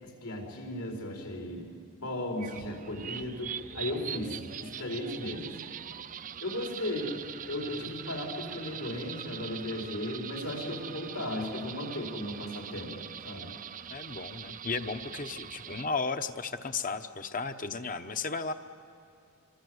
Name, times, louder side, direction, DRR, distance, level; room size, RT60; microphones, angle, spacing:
voice 1, 0.0-5.6 6.4-7.2 7.5-12.9 13.2-13.5, left 1 dB, 85° left, 0 dB, 5.0 m, -36 dB
sound 1, 2.4-15.9, right 9 dB, 35° right, 0.5 m, -42 dB
voice 2, 13.9-18.5, left 4 dB, 40° left, 9 dB, 0.9 m, -34 dB
26.0 x 24.5 x 8.1 m, 2.5 s
head